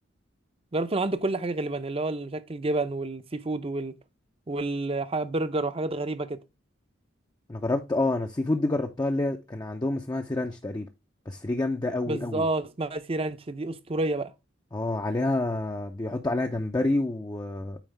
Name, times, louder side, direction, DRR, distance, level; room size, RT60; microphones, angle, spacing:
voice 1, 0.7-3.9 4.5-6.4 12.1-14.3, right 2 dB, 30° right, 0.6 m, -29 dB
voice 2, 7.5-10.9 11.3-12.5 14.7-17.8, left 2 dB, 20° left, 0.5 m, -28 dB
9.1 x 4.4 x 3.3 m
head